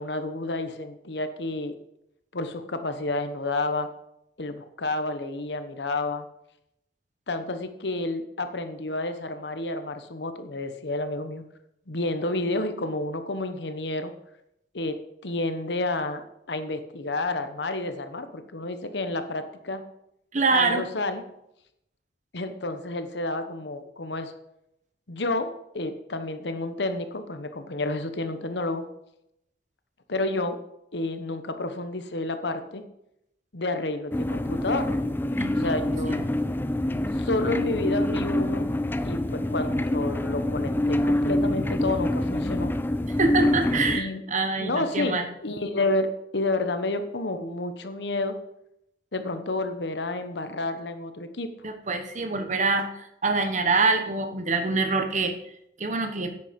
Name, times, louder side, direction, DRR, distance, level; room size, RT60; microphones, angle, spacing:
voice 1, 0.0-1.7 2.3-3.9 4.4-6.3 7.3-11.4 11.9-14.1 14.7-15.0 15.2-19.8 20.5-21.2 22.3-24.3 25.1-28.8 30.1-30.6 30.9-32.8 33.5-34.9 35.5-36.3 37.1-38.7 39.0-42.7 43.9-44.2 44.6-48.4 49.1-51.5, left 2 dB, 70° left, 9 dB, 1.1 m, -30 dB
voice 2, 20.3-20.9 35.4-35.8 36.1-36.2 43.2-45.3 51.6-55.4 55.8-56.3, right 3 dB, 45° right, 7 dB, 1.1 m, -25 dB
sound 1, 34.1-44.0, left 1 dB, 10° left, 0.5 m, -26 dB
10.5 x 8.2 x 5.3 m, 0.81 s
head